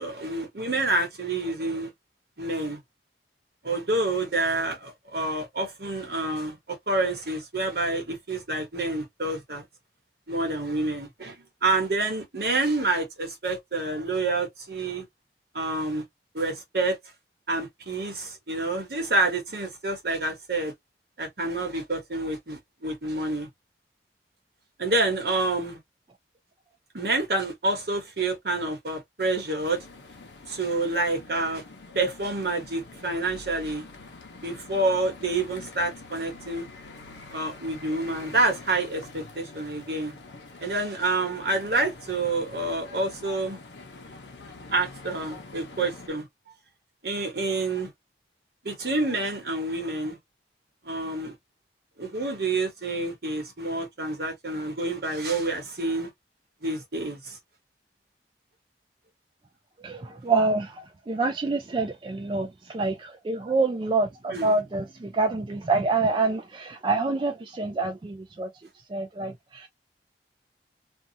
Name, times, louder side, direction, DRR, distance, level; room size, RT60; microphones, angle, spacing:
voice 1, 0.0-1.9 2.4-2.8 3.6-9.6 10.3-11.4 11.6-15.0 15.5-16.0 16.3-17.0 17.5-20.7 21.2-23.5 24.8-25.8 26.9-29.9 30.5-31.6 31.9-33.9 34.4-36.7 37.3-40.1 40.6-43.6 44.7-46.3 47.0-47.9 48.6-50.2 50.8-51.3 52.0-56.1 56.6-57.4 64.3-64.5, right 2 dB, 60° right, 1.1 m, -28 dB
sound 1, 29.6-46.1, left 3 dB, 80° left, 0.7 m, -46 dB
voice 2, 59.8-68.5 68.9-69.7, right 3 dB, 25° right, 0.3 m, -27 dB
2.6 x 2.3 x 2.6 m
head